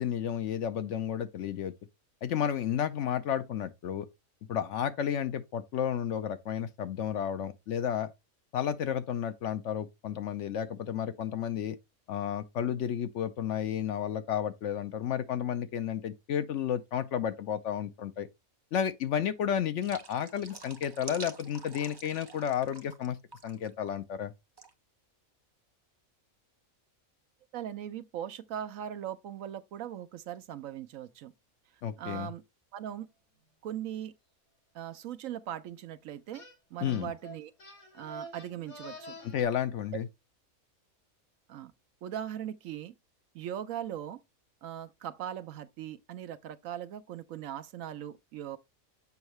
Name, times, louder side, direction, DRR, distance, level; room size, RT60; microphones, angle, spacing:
voice 1, 0.0-1.7 2.2-4.1 4.5-8.1 8.5-11.8 12.1-18.3 18.7-23.2 23.4-24.3 31.8-32.3 36.8-37.1 39.3-40.1, left 9 dB, 65° left, 0.9 m, -32 dB
sound 1, 19.8-23.1 23.3-23.7 24.6-24.7, right 3 dB, 25° right, 0.6 m, -48 dB
voice 2, 27.5-31.3 32.0-32.4 32.7-33.1 33.6-34.1 34.7-36.5 36.7-37.5 37.9-39.2 41.5-41.7 42.0-42.9 43.3-44.2 44.6-48.6, right 10 dB, 75° right, 1.0 m, -39 dB
sound 2, 36.3-36.5 36.9-39.4, equal, 90° left, 3.9 m, -47 dB
7.1 x 5.6 x 3.1 m
omnidirectional pair, 1.5 m